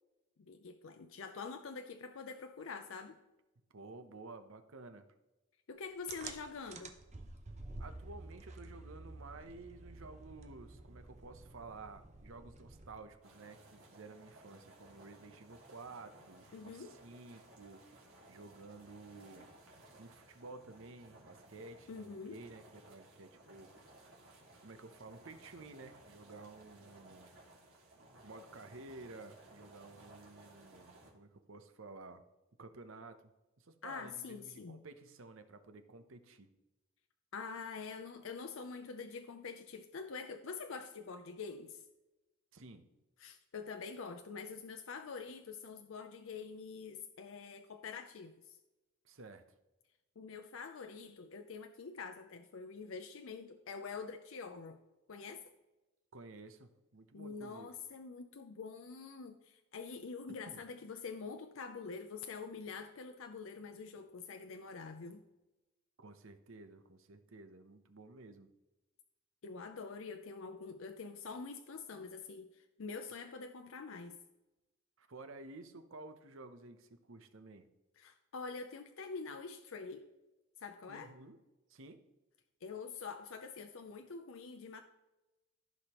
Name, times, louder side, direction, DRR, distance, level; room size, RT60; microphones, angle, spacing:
voice 1, 0.4-3.2 5.7-7.0 16.5-17.0 21.9-22.4 33.8-34.8 37.3-41.8 43.2-48.6 50.2-54.8 55.1-55.4 57.1-65.2 69.4-74.2 78.0-80.1 80.6-81.1 82.6-84.8, left 5 dB, 70° left, 7 dB, 0.5 m, -46 dB
voice 2, 3.7-5.1 7.8-17.8 18.3-19.5 20.0-23.7 24.6-27.3 28.2-32.2 32.6-33.2 33.6-36.5 42.5-42.9 49.0-49.4 56.1-57.7 60.3-60.6 66.0-68.5 75.0-77.7 80.9-81.4 81.7-82.0, right 3 dB, 65° right, 9 dB, 0.8 m, -52 dB
sound 1, 6.1-13.2, right 2 dB, 30° right, 0.7 m, -50 dB
sound 2, 13.2-31.1, right 2 dB, 85° right, 2.3 m, -59 dB
15.0 x 5.0 x 3.0 m, 1.0 s
head